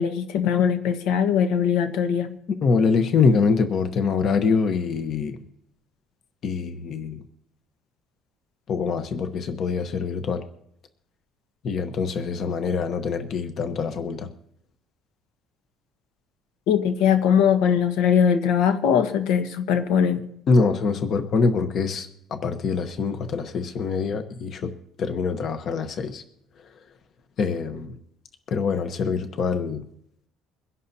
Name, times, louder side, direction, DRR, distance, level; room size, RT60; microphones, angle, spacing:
voice 1, 0.0-2.4 16.7-20.2, left 8 dB, 80° left, 7 dB, 1.4 m, -21 dB
voice 2, 2.6-5.4 6.4-7.2 8.7-10.4 11.6-14.3 20.5-24.7 25.0-26.2 27.4-28.0 28.5-29.8, left 5 dB, 40° left, 8 dB, 1.0 m, -24 dB
23.0 x 11.0 x 2.8 m, 0.72 s
cardioid pair, 165°, 0 cm